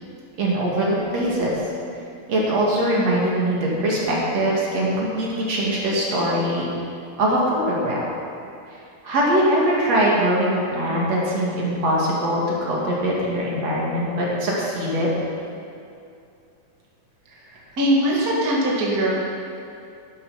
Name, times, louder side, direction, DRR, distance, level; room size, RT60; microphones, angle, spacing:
voice 1, 0.4-1.6 2.3-6.7 7.2-8.0 8.7-15.1 17.3-17.6 18.2-18.3, right 1 dB, 55° right, -5 dB, 3.4 m, -22 dB
voice 2, 17.8-19.1, right 1 dB, 30° right, -5 dB, 2.2 m, -20 dB
12.0 x 11.5 x 5.7 m, 2.5 s
omnidirectional pair, 3.6 m